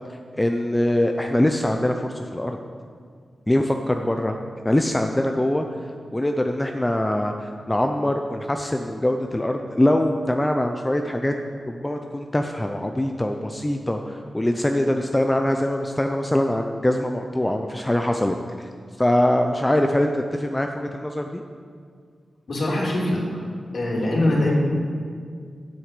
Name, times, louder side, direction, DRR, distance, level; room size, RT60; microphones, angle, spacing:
voice 1, 0.1-2.6 3.5-4.4 4.6-5.7 6.1-11.3 11.7-18.7 19.0-21.4, left 1 dB, 10° left, 4 dB, 0.5 m, -23 dB
voice 2, 22.5-23.4 23.7-24.5, left 1 dB, 55° left, -4 dB, 2.8 m, -22 dB
9.2 x 7.9 x 8.3 m, 2.2 s
wide cardioid pair, 145°, 0 cm